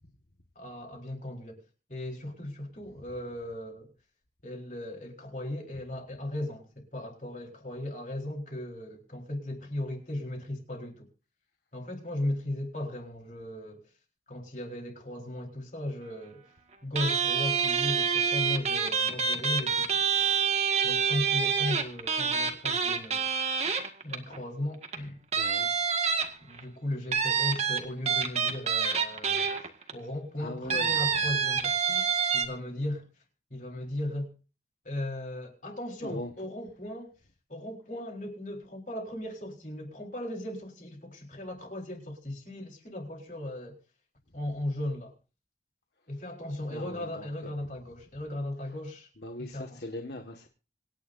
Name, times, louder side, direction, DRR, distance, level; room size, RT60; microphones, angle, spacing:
voice 1, 0.6-1.6 1.9-3.9 4.4-11.1 11.7-13.8 14.3-16.4 16.8-20.0 20.8-23.3 24.0-25.2 26.4-29.5 29.9-32.0 32.3-33.0 33.5-34.3 34.8-37.1 37.5-43.8 44.3-45.1 46.1-49.1 49.4-49.8, left 1 dB, 45° left, 4.2 m, -37 dB
sound 1, 17.0-24.4 24.8-25.0 25.3-26.6 27.1-29.9 30.7-32.5, right 6 dB, 35° right, 1.9 m, -27 dB
voice 2, 25.3-25.8 29.8-29.9 30.4-31.0 36.0-36.3 46.7-47.5 49.2-50.5, left 1 dB, 60° left, 1.7 m, -40 dB
26.5 x 10.5 x 2.7 m
head